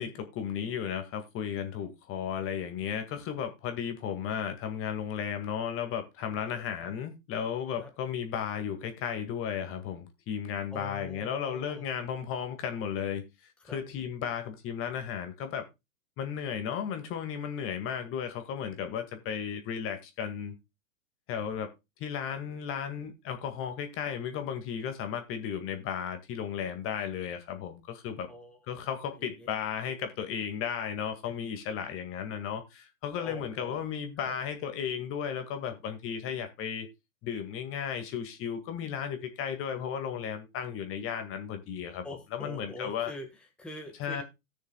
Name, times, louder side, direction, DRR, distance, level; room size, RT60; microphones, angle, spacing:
voice 1, 0.0-13.2 13.6-15.7 16.2-20.5 21.3-21.7 22.0-28.3 28.7-36.9 37.2-42.1 42.3-43.1 44.0-44.2, left 8 dB, 30° left, 1.9 m, -34 dB
voice 2, 6.3-6.9 7.8-7.9 10.7-11.9 13.6-13.8 28.3-28.6 29.1-29.5 31.2-31.3 33.2-33.9 34.2-34.3 42.0-44.2, left 2 dB, ahead, 1.4 m, -44 dB
18.0 x 6.5 x 2.2 m
hypercardioid pair, 120°, 41 cm